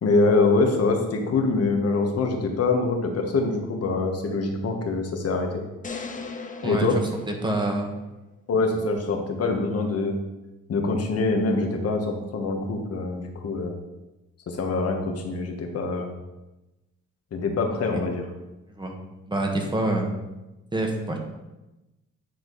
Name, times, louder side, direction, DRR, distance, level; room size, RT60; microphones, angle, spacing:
voice 1, 0.0-5.6 6.6-7.0 8.5-10.2 10.7-13.8 14.5-16.1 17.3-18.3, left 3 dB, 55° left, 3 dB, 1.5 m, -24 dB
sound 1, 5.8-8.1, left 4 dB, 25° left, 0.8 m, -38 dB
voice 2, 7.3-7.9 18.8-18.9 19.3-20.1 20.7-21.2, right 1 dB, 15° right, 2 dB, 1.5 m, -26 dB
9.8 x 4.5 x 4.1 m, 1.0 s
cardioid pair, 90°, 30 cm